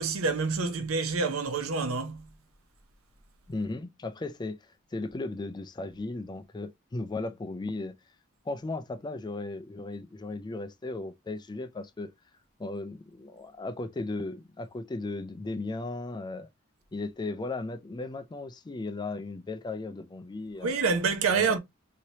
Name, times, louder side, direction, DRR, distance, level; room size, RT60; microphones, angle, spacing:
voice 1, 0.0-2.2 20.6-21.6, right 4 dB, 85° right, 0.7 m, -27 dB
voice 2, 3.5-8.0 8.5-12.1 12.6-16.5 16.9-20.8 21.2-21.6, left 2 dB, 20° left, 0.4 m, -36 dB
3.2 x 2.8 x 2.7 m
head